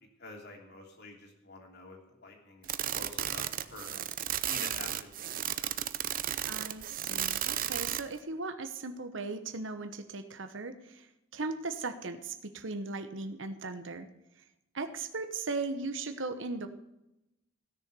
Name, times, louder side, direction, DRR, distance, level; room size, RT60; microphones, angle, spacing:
voice 1, 0.2-3.4 3.7-4.0 4.4-5.8, left 2 dB, 55° left, 2 dB, 3.0 m, -48 dB
sound 1, 2.6-8.2, right 11 dB, 45° right, 0.6 m, -34 dB
voice 2, 6.5-11.1 11.3-14.1 14.7-16.7, right 3 dB, 70° right, 8 dB, 1.1 m, -37 dB
16.5 x 6.7 x 6.9 m, 0.90 s
head